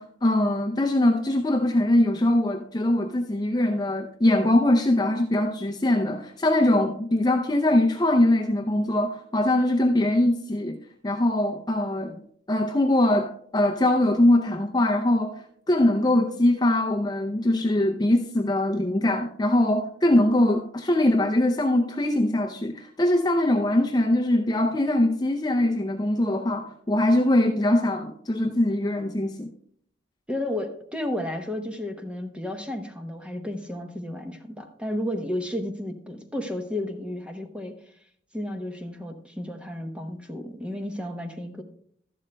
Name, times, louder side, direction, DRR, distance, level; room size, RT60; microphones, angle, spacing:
voice 1, 0.0-10.8 11.0-12.2 12.5-29.5, left 1 dB, 20° left, 2 dB, 0.5 m, -22 dB
voice 2, 30.3-37.7 38.3-41.6, left 1 dB, 5° right, 4 dB, 0.8 m, -32 dB
13.5 x 11.5 x 2.2 m, 0.66 s
head